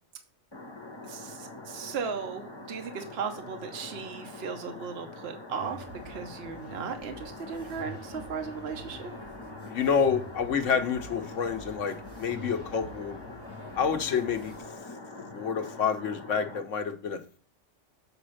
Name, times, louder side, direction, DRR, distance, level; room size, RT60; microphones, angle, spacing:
sound 1, 0.5-16.6, left 2 dB, 25° left, 1.0 m, -44 dB
voice 1, 1.1-9.1, right 6 dB, 60° right, 5 dB, 1.1 m, -37 dB
sound 2, 5.6-14.6, equal, 90° right, 2.5 m, -48 dB
voice 2, 9.7-13.2 13.8-14.5 15.3-17.4, left 6 dB, 85° left, 6 dB, 1.3 m, -28 dB
7.7 x 4.2 x 6.3 m, 0.40 s
omnidirectional pair, 1.2 m